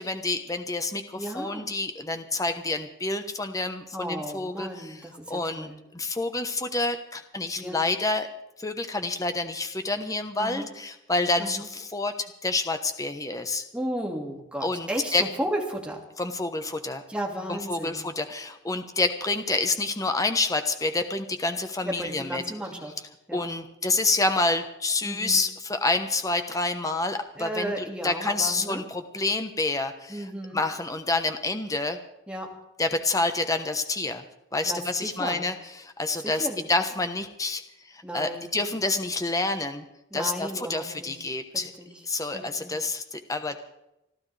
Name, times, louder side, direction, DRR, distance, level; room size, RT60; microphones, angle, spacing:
voice 1, 0.0-5.0 5.3-8.3 8.6-12.1 12.4-13.6 14.6-15.2 16.2-17.0 17.5-22.4 23.3-27.7 28.0-30.2 30.5-32.0 32.8-34.2 34.5-37.6 37.9-39.8 40.1-41.7 42.1-43.6, left 2 dB, 15° left, 7 dB, 1.1 m, -28 dB
voice 2, 1.2-1.7 3.9-5.8 7.6-7.8 10.4-10.7 11.4-11.7 13.7-16.0 17.1-18.1 21.8-22.9 23.3-23.4 25.0-25.4 27.4-28.8 30.1-30.6 32.3-32.5 34.6-35.5 36.2-36.7 38.0-38.7 40.1-41.9 42.3-42.8, right 1 dB, 5° right, 0 dB, 2.2 m, -34 dB
28.0 x 12.5 x 3.4 m, 0.88 s
head